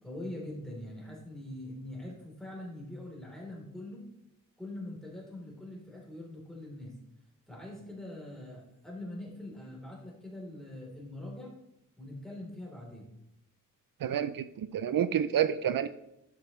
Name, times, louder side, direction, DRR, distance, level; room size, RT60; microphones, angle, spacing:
voice 1, 0.0-4.1 4.6-7.0 7.5-11.5 12.0-13.1, left 1 dB, ahead, -3 dB, 3.4 m, -43 dB
voice 2, 14.0-15.9, right 9 dB, 75° right, 12 dB, 0.5 m, -29 dB
10.5 x 8.6 x 3.1 m, 0.83 s
wide cardioid pair, 130°, 34 cm